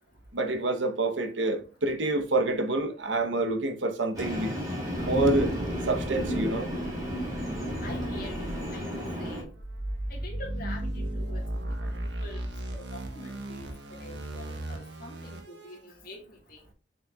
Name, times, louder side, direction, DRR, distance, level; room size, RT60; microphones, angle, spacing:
voice 1, 0.3-4.6 5.0-5.5 5.9-6.7, right 2 dB, 90° right, 1.1 m, -27 dB
Train, 4.1-9.4, equal, 20° right, 2.9 m, -32 dB
sound 1, 5.0-15.8, right 1 dB, 75° right, 1.4 m, -37 dB
voice 2, 7.8-9.5 10.1-16.6, left 1 dB, 50° left, 2.1 m, -46 dB
6.4 x 6.1 x 2.4 m
head